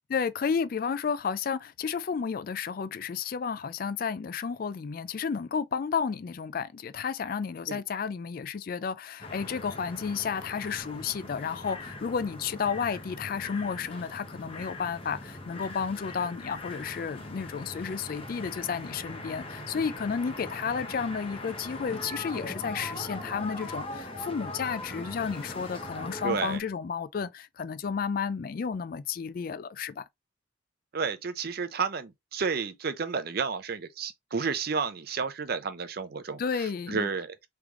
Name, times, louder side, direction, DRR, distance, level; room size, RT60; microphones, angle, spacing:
voice 1, 0.1-30.0 36.4-37.1, left 6 dB, 45° left, 0.3 m, -32 dB
sound 1, 9.2-26.6, left 1 dB, 25° left, 0.8 m, -41 dB
voice 2, 26.2-26.6 30.9-37.5, right 5 dB, 50° right, 0.5 m, -31 dB
3.3 x 3.0 x 3.6 m
head